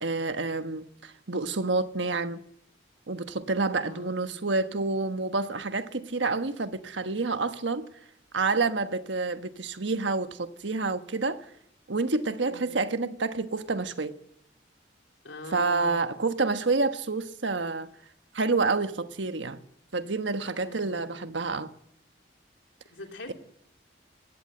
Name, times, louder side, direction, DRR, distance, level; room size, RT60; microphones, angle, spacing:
voice 1, 0.0-2.4 3.1-7.9 8.3-11.4 11.9-14.2 15.5-17.9 18.3-19.6 19.9-21.7, right 3 dB, 80° right, 1.3 m, -28 dB
voice 2, 3.8-4.4 12.4-12.8 15.2-16.1 20.6-21.0 22.9-23.3, left 1 dB, 80° left, 3.3 m, -43 dB
20.5 x 16.5 x 7.9 m
head